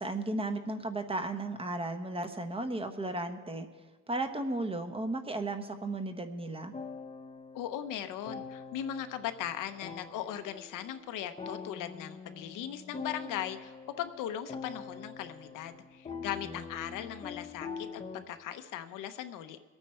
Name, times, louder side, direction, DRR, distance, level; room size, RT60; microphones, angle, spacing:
voice 1, 0.0-3.7 4.1-6.7, right 2 dB, 20° right, 7 dB, 1.0 m, -34 dB
sound 1, 6.7-18.2, left 4 dB, 20° left, 0.9 m, -44 dB
voice 2, 7.5-19.6, left 10 dB, 85° left, 9 dB, 1.0 m, -39 dB
23.0 x 9.0 x 4.4 m, 1.3 s
cardioid pair, 130°, 31 cm